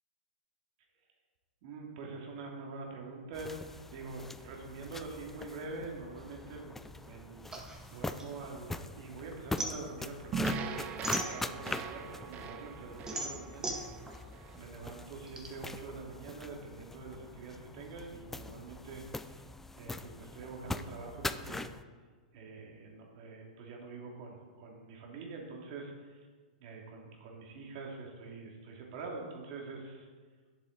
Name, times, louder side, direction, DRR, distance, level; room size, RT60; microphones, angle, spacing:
voice 1, 1.6-3.6 3.9-7.5 7.8-13.7 14.5-19.4 19.8-21.7 22.3-26.3 26.6-30.1, right 3 dB, 50° right, 0 dB, 2.5 m, -45 dB
sound 1, 3.3-21.8, left 2 dB, 5° left, 0.4 m, -43 dB
sound 2, 7.5-9.0 9.3-11.9 12.3-15.5, right 2 dB, 15° right, 1.5 m, -39 dB
sound 3, 10.3-14.6, right 5 dB, 30° right, 0.8 m, -40 dB
11.0 x 7.8 x 4.0 m, 1.5 s
hypercardioid pair, 110°, 5 cm